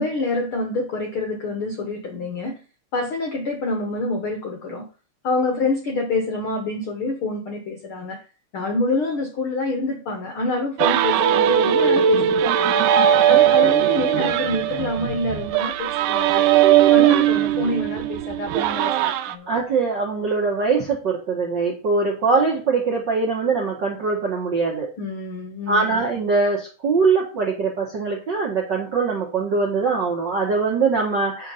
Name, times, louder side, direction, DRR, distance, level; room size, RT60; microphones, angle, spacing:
voice 1, 0.0-2.5 2.9-4.8 5.2-8.2 8.5-12.8 13.3-16.5 16.9-19.5 25.0-26.0, left 2 dB, 70° left, 3 dB, 1.2 m, -27 dB
sound 1, 10.8-19.3, right 10 dB, 80° right, 2.1 m, -19 dB
voice 2, 19.5-24.9 25.7-31.5, right 4 dB, 60° right, -2 dB, 1.1 m, -22 dB
7.8 x 4.5 x 5.5 m, 0.35 s
omnidirectional pair, 3.9 m